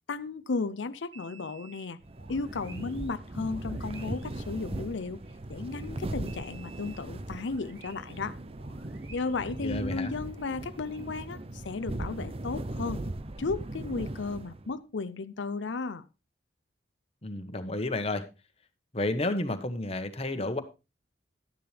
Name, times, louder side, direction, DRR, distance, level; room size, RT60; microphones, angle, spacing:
voice 1, 0.1-2.0 2.3-5.2 5.5-8.4 9.1-13.0 13.4-16.0, left 4 dB, 85° left, 12 dB, 0.6 m, -34 dB
sound 1, 1.1-5.9 6.3-8.3 8.5-11.0, right 5 dB, 85° right, 2.5 m, -56 dB
sound 2, 2.0-14.8, right 1 dB, 35° right, 0.7 m, -39 dB
voice 2, 9.6-10.1 17.2-18.2 18.9-20.6, left 2 dB, 35° left, 8 dB, 1.3 m, -31 dB
12.0 x 10.5 x 3.4 m, 0.28 s
head